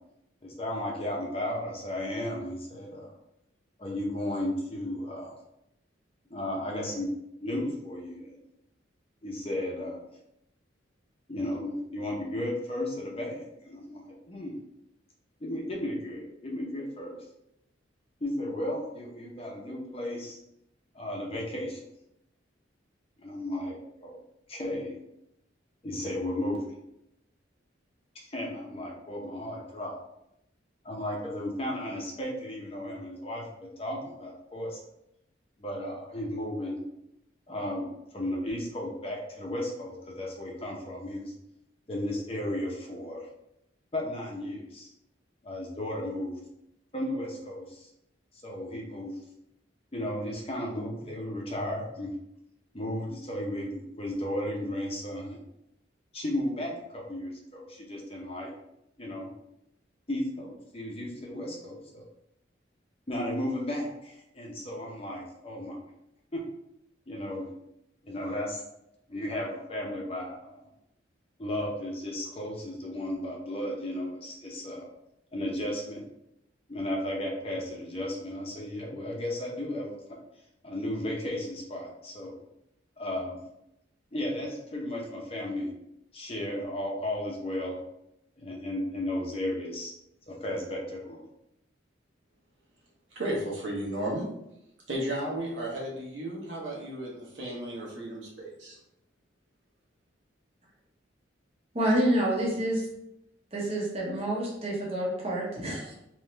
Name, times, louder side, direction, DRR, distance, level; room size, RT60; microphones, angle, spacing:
voice 1, 0.4-3.1 3.8-5.3 6.3-7.1 7.4-8.4 9.2-10.0 11.3-14.6 15.4-17.2 18.2-20.4 20.9-21.8 23.2-24.2 24.5-24.9 25.8-26.8 28.2-30.0 30.8-34.8 35.6-36.8 37.5-37.9 38.1-41.3 41.9-43.3 43.9-44.9 45.4-46.4 46.9-47.9 48.4-49.1 49.9-52.1 52.7-55.4 56.1-58.5 59.0-59.3 60.1-62.0 63.1-65.8 66.3-66.4 67.1-67.5 68.0-68.6 69.1-70.5 71.4-74.9 75.3-76.0 76.7-80.2 80.6-82.4 83.0-83.4 84.1-85.7 86.1-87.8 88.4-89.9 90.3-91.3, left 1 dB, 30° left, -2 dB, 0.7 m, -34 dB
voice 2, 93.1-94.3 94.9-98.8, right 1 dB, 80° right, -4 dB, 1.3 m, -34 dB
voice 3, 101.7-102.8 103.5-105.9, right 1 dB, 30° right, -3 dB, 1.0 m, -28 dB
3.5 x 3.1 x 3.2 m, 0.83 s
head